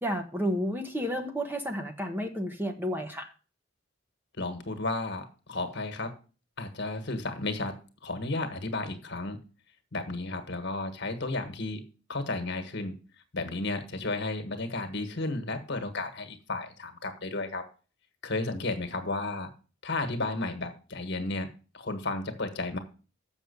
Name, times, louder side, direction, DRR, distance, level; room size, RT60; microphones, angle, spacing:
voice 1, 0.0-3.3, equal, 10° right, 5 dB, 1.0 m, -31 dB
voice 2, 4.4-6.2 6.6-9.4 9.9-11.8 12.1-12.9 13.3-17.7 18.2-19.5 19.8-21.5 21.7-22.8, left 2 dB, 60° left, 8 dB, 1.6 m, -33 dB
7.3 x 6.2 x 6.9 m, 0.35 s
head